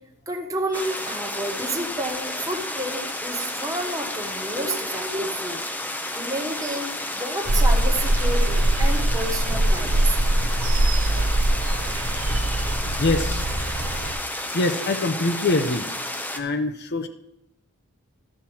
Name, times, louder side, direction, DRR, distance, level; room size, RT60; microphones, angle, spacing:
voice 1, 0.3-5.6 6.1-10.2, right 1 dB, 15° right, 2 dB, 1.2 m, -30 dB
sound 1, 0.7-16.4, left 1 dB, 10° left, 0.6 m, -31 dB
sound 2, 7.4-14.1, right 1 dB, 75° right, 0.8 m, -22 dB
voice 2, 13.0-13.5 14.5-15.8 16.3-17.1, left 2 dB, 50° left, 8 dB, 0.6 m, -24 dB
12.5 x 4.5 x 7.2 m, 0.81 s
head